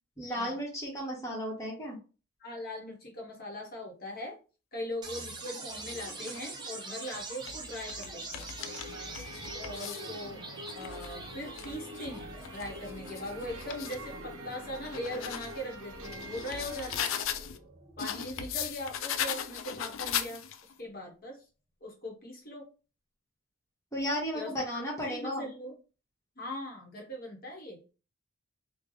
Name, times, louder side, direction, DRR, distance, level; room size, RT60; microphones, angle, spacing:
voice 1, 0.2-2.0 23.9-25.5, equal, 15° left, -3 dB, 1.1 m, -34 dB
voice 2, 2.4-4.4 4.7-8.6 9.5-10.4 10.7-17.1 18.0-20.4 20.8-21.4 21.8-22.7 24.3-24.5 25.1-25.7 26.4-27.8, left 1 dB, 45° left, 0 dB, 1.1 m, -40 dB
sound 1, 5.0-19.0, right 3 dB, 20° right, 0.6 m, -45 dB
sound 2, 5.7-6.5 7.2-10.1 10.6-14.0 14.5-17.6 18.0-20.7, left 9 dB, 65° left, 0.3 m, -39 dB
sound 3, 8.6-17.2, equal, 75° right, 0.5 m, -45 dB
3.1 x 2.3 x 3.7 m, 0.34 s
head